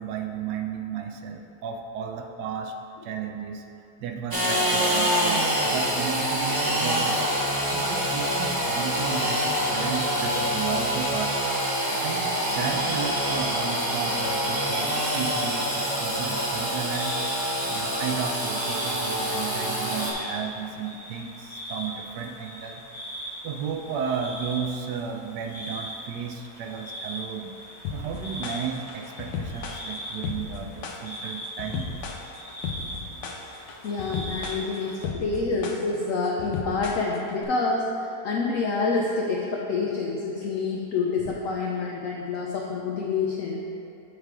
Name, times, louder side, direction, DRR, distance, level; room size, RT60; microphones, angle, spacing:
voice 1, 0.0-2.7 3.0-11.4 11.9-22.8 23.4-27.6 27.9-32.1, right 7 dB, 80° right, 4 dB, 1.2 m, -34 dB
Engine / Sawing, 4.3-20.1, equal, 30° right, 0.4 m, -26 dB
sound 1, 16.7-35.1, equal, 20° left, 1.3 m, -40 dB
sound 2, 27.8-37.4, left 5 dB, 85° left, 1.3 m, -35 dB
voice 2, 33.8-43.7, left 4 dB, 65° left, -2 dB, 0.8 m, -27 dB
8.2 x 3.3 x 4.7 m, 2.6 s
omnidirectional pair, 1.8 m